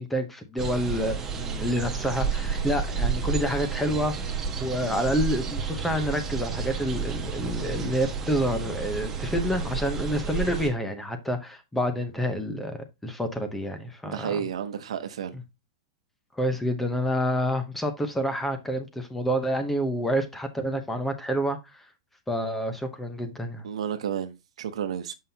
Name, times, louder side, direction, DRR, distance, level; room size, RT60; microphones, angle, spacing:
voice 1, 0.0-4.1 4.6-14.4 16.4-21.8 22.3-23.6, equal, 5° left, 0.9 m, -28 dB
sound 1, 0.6-10.7, right 6 dB, 15° right, 1.1 m, -31 dB
voice 2, 14.0-15.4 23.6-25.1, right 8 dB, 90° right, 0.8 m, -32 dB
7.4 x 5.6 x 2.8 m
supercardioid pair, 160°, 3 cm